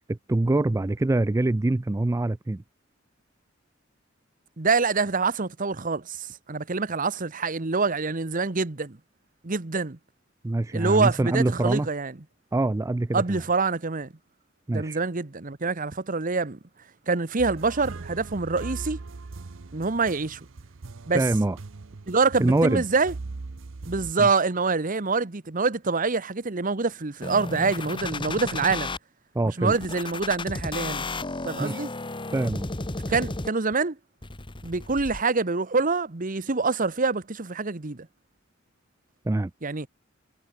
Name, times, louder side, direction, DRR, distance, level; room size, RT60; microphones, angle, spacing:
voice 1, 0.1-2.6 10.4-11.9 12.5-13.4 14.7-15.0 21.1-21.6 22.4-22.8 24.2-24.3 29.3-29.7 31.6-31.8 32.3-32.7 39.2-39.5, right 2 dB, 15° right, 0.4 m, -24 dB
voice 2, 4.6-9.0 9.4-10.0 10.7-12.1 13.1-14.1 14.7-16.6 17.1-19.0 19.7-20.4 21.1-21.2 22.1-23.1 23.8-28.9 29.6-31.1 31.4-31.9 33.1-34.0 34.6-38.1 39.6-39.9, right 4 dB, 40° right, 1.1 m, -26 dB
sound 1, 17.4-24.1, right 3 dB, 75° right, 0.7 m, -40 dB
sound 2, 27.2-29.0 29.7-33.7 34.2-35.2, left 2 dB, 25° left, 1.3 m, -33 dB
head